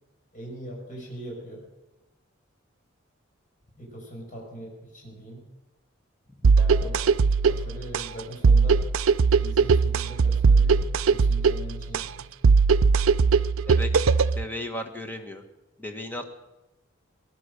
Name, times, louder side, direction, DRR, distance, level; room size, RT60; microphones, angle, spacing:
voice 1, 0.3-1.6 3.8-5.4 6.5-7.0 7.5-8.8 9.4-12.2, right 1 dB, 40° left, -3 dB, 6.0 m, -40 dB
sound 1, 6.4-14.4, right 5 dB, 90° right, 0.5 m, -20 dB
voice 2, 13.6-14.1 14.3-15.4 15.8-16.3, left 1 dB, 10° left, 5 dB, 1.5 m, -35 dB
19.0 x 11.5 x 6.6 m, 1.0 s
head